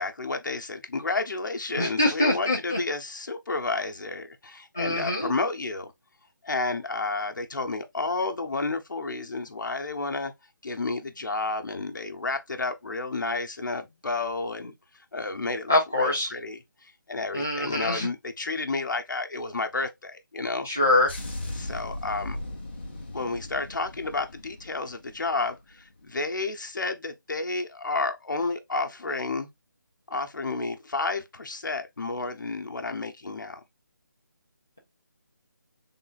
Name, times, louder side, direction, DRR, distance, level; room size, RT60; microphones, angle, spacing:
voice 1, 0.0-5.9 6.4-10.3 10.6-14.7 15.1-20.7 21.6-22.4 23.1-29.5 30.1-33.6, left 3 dB, 70° left, 0.9 m, -31 dB
voice 2, 1.8-2.8 4.7-5.3 15.7-16.3 17.3-18.1 20.6-21.1, left 2 dB, 5° left, 0.4 m, -24 dB
sound 1, 21.1-25.6 25.9-26.2, left 1 dB, 30° left, 0.8 m, -38 dB
3.6 x 2.4 x 4.0 m
hypercardioid pair, 180°, 11 cm